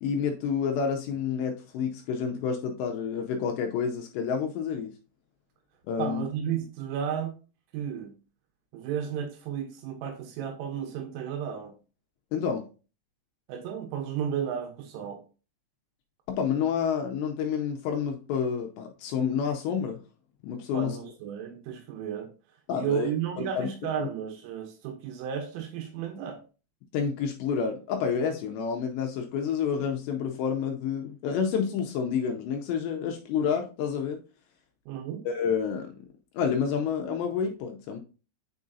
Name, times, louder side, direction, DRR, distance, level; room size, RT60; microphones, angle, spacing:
voice 1, 0.0-4.9 5.9-6.2 12.3-12.7 16.3-20.0 20.4-21.0 22.7-23.1 23.4-23.7 24.0-24.1 26.9-34.2 35.3-36.1 36.3-38.0, left 7 dB, 80° left, 3 dB, 2.6 m, -29 dB
voice 2, 6.0-7.3 7.7-8.1 8.7-11.7 13.5-15.2 20.7-22.3 22.7-26.4 34.9-35.2, right 8 dB, 85° right, 3 dB, 3.6 m, -33 dB
9.3 x 4.8 x 2.7 m, 0.34 s
omnidirectional pair, 5.6 m